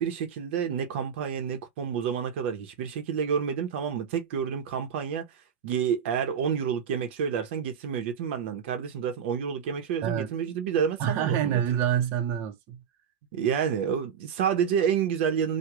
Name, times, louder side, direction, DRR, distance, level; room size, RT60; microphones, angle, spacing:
voice 1, 0.0-5.3 5.6-11.6 13.3-15.6, right 7 dB, 75° right, 0.9 m, -29 dB
voice 2, 11.0-12.8, right 9 dB, 45° right, 0.8 m, -26 dB
3.0 x 2.3 x 3.5 m
supercardioid pair, 160°, 6 cm